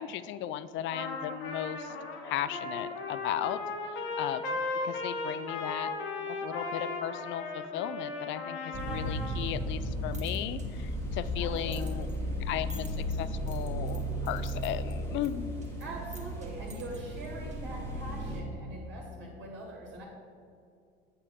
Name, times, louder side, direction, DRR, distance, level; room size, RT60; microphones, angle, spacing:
voice 1, 0.0-1.9 2.2-3.6 4.2-4.6 4.8-5.9 6.3-12.1 12.4-12.9 13.2-15.5, left 11 dB, 40° left, 14 dB, 0.5 m, -36 dB
Trumpet, 0.9-9.4, left 3 dB, 65° left, 1.4 m, -36 dB
sound 1, 8.7-18.4, equal, 10° left, 2.0 m, -35 dB
sound 2, 9.8-17.9, right 1 dB, 25° right, 1.7 m, -54 dB
voice 2, 11.4-12.1 15.8-20.0, right 1 dB, 40° right, -2 dB, 2.0 m, -43 dB
8.3 x 5.4 x 6.3 m, 2.4 s
figure-of-eight pair, 65°, 31 cm